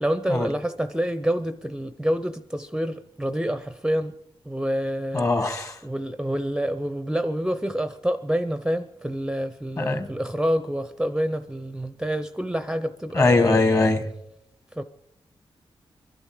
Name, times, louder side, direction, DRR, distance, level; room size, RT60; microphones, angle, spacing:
voice 1, 0.0-4.1 4.4-5.5 5.8-13.6 14.8-14.9, equal, 5° right, 0.5 m, -27 dB
voice 2, 5.1-5.8 9.8-10.1 13.1-14.0, left 3 dB, 35° left, 1.5 m, -21 dB
23.0 x 12.0 x 4.9 m
cardioid pair, 90°, 10 cm